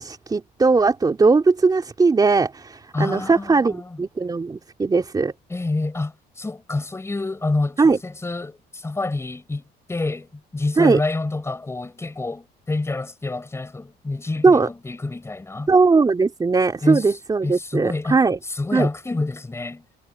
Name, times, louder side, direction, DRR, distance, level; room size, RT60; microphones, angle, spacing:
voice 1, 0.0-5.3 7.8-8.0 10.8-11.0 14.4-14.7 15.7-18.4 18.7-18.9, right 4 dB, 25° right, 3.3 m, -19 dB
voice 2, 2.9-4.0 5.5-9.6 9.9-15.7 16.8-18.2 18.5-19.8, left 2 dB, 15° left, 6.0 m, -28 dB
cardioid pair, 110°, 17 cm